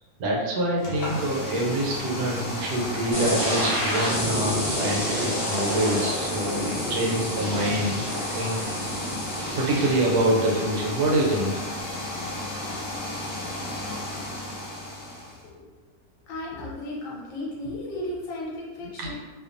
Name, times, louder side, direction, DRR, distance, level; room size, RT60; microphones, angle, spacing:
voice 1, 0.2-8.6 8.9-9.1 9.5-11.6 19.0-19.2, right 1 dB, 80° right, -2 dB, 1.1 m, -26 dB
sound 1, 0.8-15.4, left 1 dB, 90° left, 0.3 m, -33 dB
sound 2, 3.1-9.9, equal, 30° left, 0.9 m, -29 dB
voice 2, 16.3-19.2, left 1 dB, 70° left, -5 dB, 1.0 m, -34 dB
2.6 x 2.3 x 2.5 m, 1.3 s
omnidirectional pair, 1.6 m